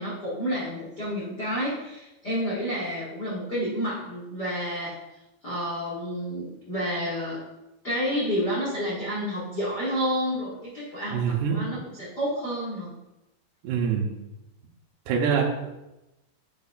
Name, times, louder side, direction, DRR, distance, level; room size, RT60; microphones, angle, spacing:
voice 1, 0.0-5.0 5.4-7.4 7.8-13.0, equal, 60° left, -7 dB, 1.0 m, -30 dB
voice 2, 11.1-11.6 13.6-14.1 15.1-15.7, right 6 dB, 75° right, -1 dB, 2.7 m, -25 dB
9.3 x 6.9 x 2.4 m, 0.94 s
omnidirectional pair, 5.2 m